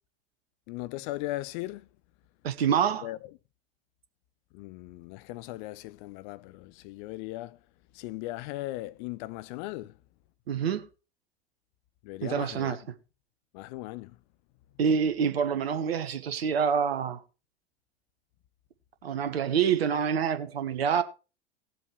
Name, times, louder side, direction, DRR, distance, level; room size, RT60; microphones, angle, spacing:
voice 1, 0.7-1.9 3.0-3.2 4.5-7.6 7.9-10.0 12.0-12.8 13.5-14.2, left 18 dB, 50° left, 0.7 m, -38 dB
voice 2, 2.4-3.1 10.5-10.8 12.2-12.8 14.8-17.2 19.0-21.0, right 7 dB, 70° right, 1.2 m, -26 dB
18.0 x 7.7 x 3.1 m
figure-of-eight pair, 80°, 32 cm